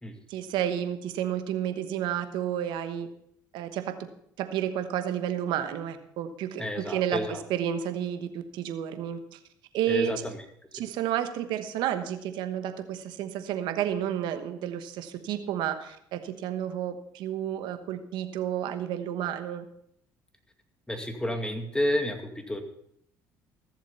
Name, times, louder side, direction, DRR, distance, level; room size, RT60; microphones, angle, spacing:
voice 1, 0.3-3.1 3.5-4.0 4.4-9.4 9.7-10.1 10.7-19.6, right 10 dB, 75° right, 9 dB, 1.1 m, -31 dB
voice 2, 6.6-7.4 9.9-10.4 20.9-22.6, left 1 dB, 10° left, 5 dB, 2.2 m, -30 dB
14.5 x 7.4 x 5.6 m, 0.69 s
supercardioid pair, 70°, 8 cm